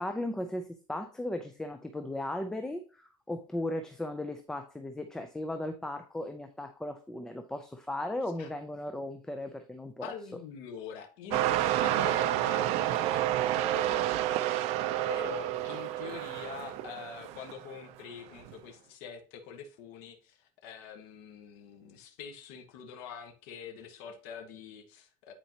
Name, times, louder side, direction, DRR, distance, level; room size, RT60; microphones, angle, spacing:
voice 1, 0.0-10.1, left 1 dB, 5° left, 0.5 m, -36 dB
voice 2, 10.0-14.6 15.1-25.3, left 7 dB, 75° left, 1.4 m, -45 dB
sound 1, 11.3-17.7 18.4-18.5, right 13 dB, 60° right, 0.5 m, -29 dB
9.9 x 4.5 x 2.9 m
cardioid pair, 165°, 13 cm